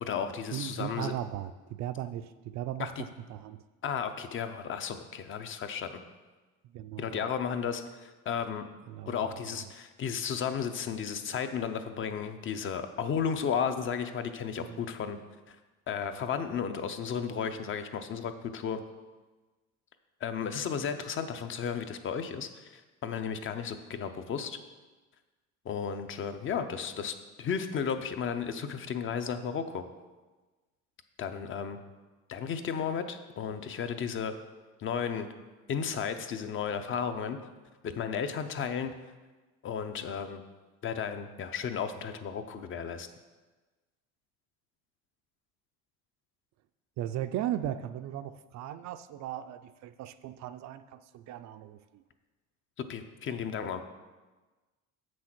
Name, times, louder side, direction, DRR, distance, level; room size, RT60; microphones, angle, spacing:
voice 1, 0.0-1.1 2.8-3.0 3.8-6.0 7.0-8.7 9.1-15.2 15.5-15.6 15.9-18.8 20.2-24.6 25.6-29.8 31.2-31.8 32.3-34.3 34.8-35.3 35.7-37.4 37.8-38.9 39.6-40.4 40.8-43.1 52.9-53.8, left 7 dB, 40° left, 9 dB, 0.6 m, -34 dB
voice 2, 0.5-3.6 6.6-7.3 8.9-9.7 14.6-14.8 47.0-52.0, right 11 dB, 55° right, 11 dB, 0.4 m, -37 dB
7.5 x 6.3 x 6.0 m, 1.3 s
cardioid pair, 155°, 33 cm